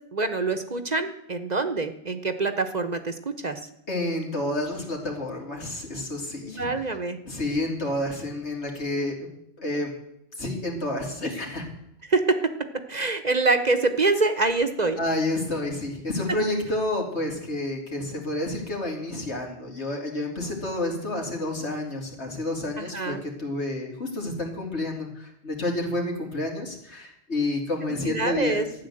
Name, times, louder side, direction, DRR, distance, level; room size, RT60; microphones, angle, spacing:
voice 1, 0.1-3.6 6.4-7.2 12.1-12.4 12.9-15.0 22.8-23.2 27.8-28.7, right 3 dB, 40° right, 9 dB, 1.0 m, -25 dB
voice 2, 3.9-6.7 7.2-9.1 9.6-9.9 10.4-11.7 15.0-28.6, left 1 dB, 75° left, 0 dB, 3.4 m, -29 dB
13.0 x 9.4 x 7.8 m, 0.78 s
omnidirectional pair, 1.1 m